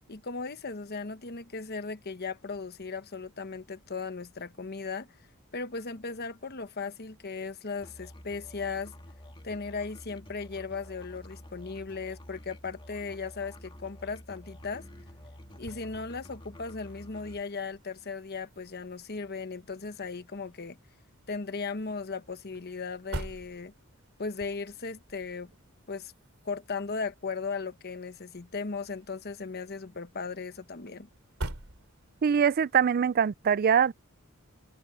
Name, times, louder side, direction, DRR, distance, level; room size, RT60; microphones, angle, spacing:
voice 1, 0.1-5.1 5.5-8.9 9.4-14.9 15.6-20.8 21.3-23.7 24.2-25.5 25.9-26.1 26.4-31.1, left 4 dB, 50° left, 1.1 m, -37 dB
Musical instrument, 7.8-17.4, left 1 dB, 25° left, 1.7 m, -49 dB
sound 1, 14.4-32.4, right 1 dB, 85° right, 3.0 m, -47 dB
voice 2, 32.2-33.9, right 7 dB, 45° right, 0.4 m, -23 dB
head